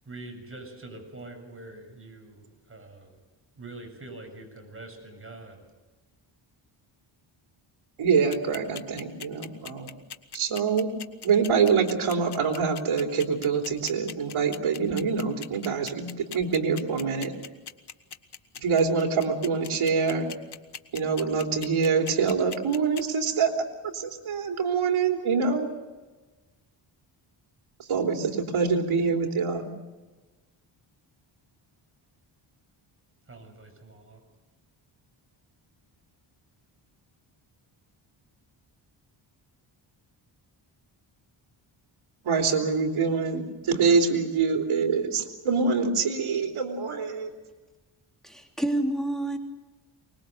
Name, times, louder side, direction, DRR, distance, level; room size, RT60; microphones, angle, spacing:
voice 1, 0.1-3.1 3.6-5.6 33.3-34.2, right 2 dB, 25° right, 4 dB, 7.3 m, -44 dB
voice 2, 8.0-9.9 10.3-10.9 11.2-17.3 18.6-20.3 20.9-23.5 23.8-25.7 27.9-29.7 42.2-47.3, right 5 dB, 80° right, 2 dB, 3.5 m, -25 dB
sound 1, 8.3-23.0, left 8 dB, 55° left, 1.4 m, -39 dB
voice 3, 48.2-49.4, right 1 dB, ahead, 2 dB, 3.2 m, -28 dB
24.5 x 21.5 x 6.7 m, 1.2 s
cardioid pair, 105°, 48 cm